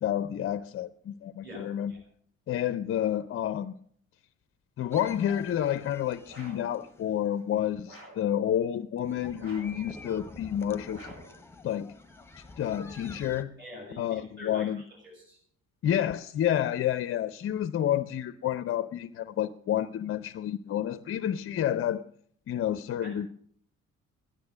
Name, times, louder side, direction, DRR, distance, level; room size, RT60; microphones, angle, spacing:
voice 1, 0.0-1.9 2.5-3.7 4.8-11.1 11.6-11.9 12.6-13.5 14.0-14.8 15.8-22.0 22.5-23.3, left 10 dB, 35° left, 14 dB, 0.5 m, -29 dB
voice 2, 1.4-2.0 13.6-14.7 15.0-15.4 23.0-23.1, left 1 dB, 30° right, -1 dB, 6.2 m, -45 dB
sound 1, 4.9-7.5 9.0-13.4, left 2 dB, 5° left, 1.0 m, -48 dB
sound 2, 6.3-6.7 7.8-8.3 9.4-9.9 10.9-11.4, right 1 dB, 65° right, 7.8 m, -49 dB
13.0 x 11.0 x 6.3 m, 0.64 s
figure-of-eight pair, 45°, 41 cm